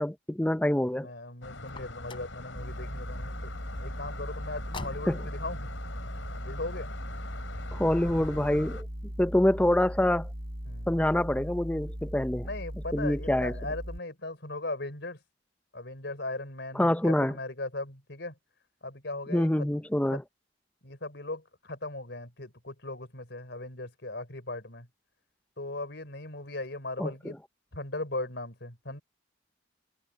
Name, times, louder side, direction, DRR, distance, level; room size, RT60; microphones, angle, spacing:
voice 1, 0.0-1.1 5.1-5.2 7.7-8.9 9.2-10.3 10.9-12.5 12.9-13.5 16.7-17.4 19.3-20.2 27.0-27.4, left 1 dB, 5° left, 0.6 m, -26 dB
voice 2, 0.9-3.5 3.8-5.7 6.4-6.9 10.7-10.9 12.4-15.2 15.7-18.3 18.8-19.6 20.1-20.2 20.8-24.9 25.6-27.4 27.7-29.0, left 2 dB, 60° left, 5.1 m, -38 dB
sound 1, 1.4-8.8, left 2 dB, 85° left, 5.0 m, -43 dB
Car, 1.6-2.4 4.5-5.4, left 2 dB, 25° left, 5.0 m, -43 dB
sound 2, 2.6-14.0, equal, 50° right, 6.0 m, -39 dB
head